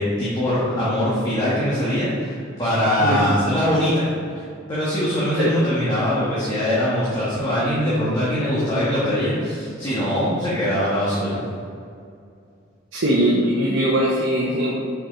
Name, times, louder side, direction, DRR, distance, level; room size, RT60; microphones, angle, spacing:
voice 1, 0.0-4.4 4.7-11.4, equal, 20° left, -10 dB, 1.4 m, -22 dB
voice 2, 12.9-14.8, right 1 dB, 70° right, -4 dB, 0.9 m, -20 dB
5.2 x 5.1 x 4.4 m, 2.3 s
head